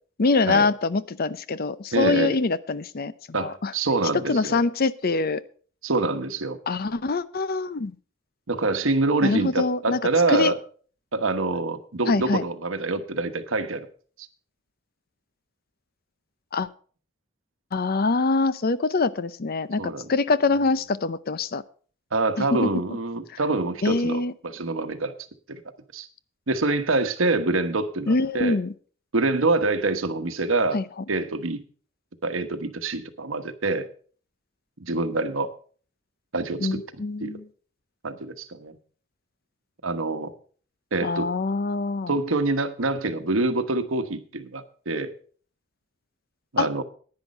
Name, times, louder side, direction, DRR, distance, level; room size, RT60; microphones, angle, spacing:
voice 1, 0.2-3.7 4.3-5.4 6.7-7.9 9.2-10.0 10.3-10.5 12.1-12.4 16.5-16.7 17.7-21.6 22.4-22.7 23.3-23.4 23.8-24.3 28.1-28.7 30.7-30.8 36.6-37.4 41.0-42.1 46.6-46.7, left 3 dB, 50° left, 16 dB, 0.6 m, -24 dB
voice 2, 1.9-2.4 3.3-4.6 5.8-6.6 8.5-10.6 11.1-13.9 19.8-20.1 22.1-25.1 25.5-25.6 25.9-26.1 26.5-28.6 29.1-30.8 31.1-31.6 32.2-33.9 34.8-35.5 36.3-37.4 38.0-38.8 39.8-40.3 40.9-41.3 42.1-45.1 46.5-46.8, right 3 dB, 85° right, 10 dB, 1.2 m, -26 dB
10.5 x 9.8 x 5.4 m, 0.43 s
head